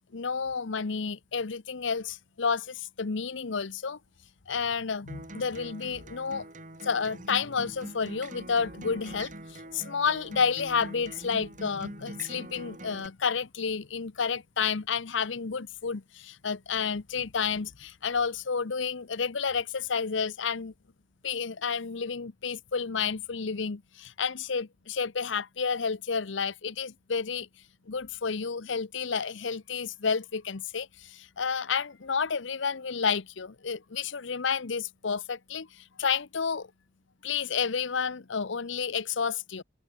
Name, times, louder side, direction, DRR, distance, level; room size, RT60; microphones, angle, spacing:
voice 1, 0.1-4.0 4.5-6.5 6.8-20.7 21.2-27.5 27.9-36.7 37.2-39.6, left 5 dB, 70° left, 0.8 m, -30 dB
Acoustic guitar, 5.1-13.1, right 1 dB, 40° right, 4.7 m, -44 dB
open air
head